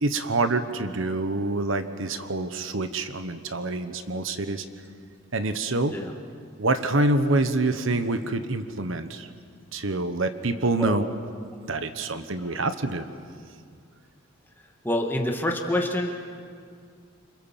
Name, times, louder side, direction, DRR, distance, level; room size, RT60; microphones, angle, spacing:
voice 1, 0.0-4.6 5.3-6.0 6.6-9.3 9.7-11.1 11.6-13.0, right 2 dB, 70° right, 10 dB, 1.2 m, -26 dB
voice 2, 14.8-16.2, left 1 dB, 10° left, 1 dB, 1.9 m, -27 dB
28.0 x 26.0 x 7.5 m, 2.2 s
head